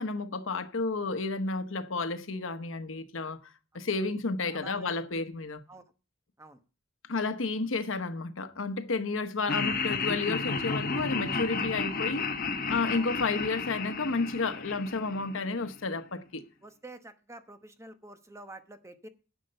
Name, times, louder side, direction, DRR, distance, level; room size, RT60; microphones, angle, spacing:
voice 1, 0.0-3.4 3.7-5.6 7.1-12.3 12.7-16.4, left 3 dB, 85° left, 1.0 m, -31 dB
voice 2, 4.4-5.1 5.7-5.8 6.4-6.6 12.9-13.2 16.6-19.1, right 2 dB, 15° right, 1.0 m, -48 dB
Laughter, 9.5-15.7, left 4 dB, 45° left, 1.1 m, -32 dB
11.0 x 6.5 x 6.6 m
head